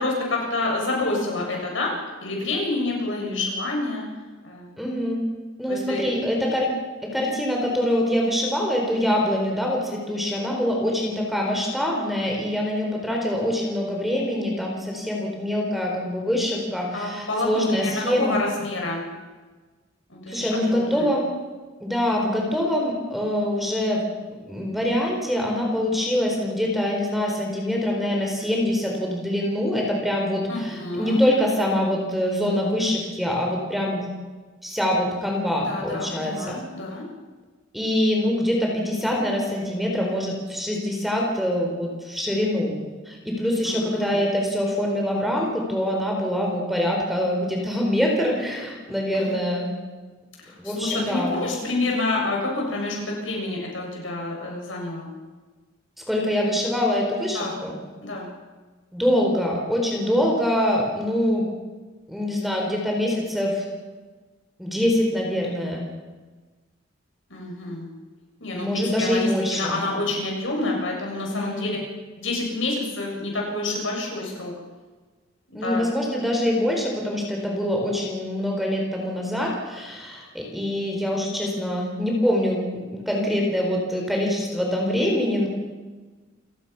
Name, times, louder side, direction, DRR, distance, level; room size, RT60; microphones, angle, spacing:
voice 1, 0.0-1.9 2.2-4.1 4.4-4.7 5.7-6.0 16.9-19.0 20.1-21.1 30.5-31.2 35.6-37.0 43.7-44.2 49.2-49.3 50.4-55.1 57.3-57.6 58.0-58.3 67.3-67.9 68.4-71.7 72.2-74.5 75.5-75.8, left 2 dB, 80° left, -1 dB, 7.3 m, -28 dB
voice 2, 4.8-5.2 5.6-6.7 7.0-18.4 20.3-21.3 21.8-24.0 24.5-34.1 34.6-36.6 37.7-42.7 43.1-49.8 50.6-51.3 56.1-57.7 58.9-61.5 62.1-63.7 64.6-65.9 68.5-69.8 71.3-71.7 75.5-82.6 82.9-85.5, left 1 dB, ahead, 0 dB, 4.1 m, -24 dB
28.5 x 17.0 x 6.0 m, 1.3 s
head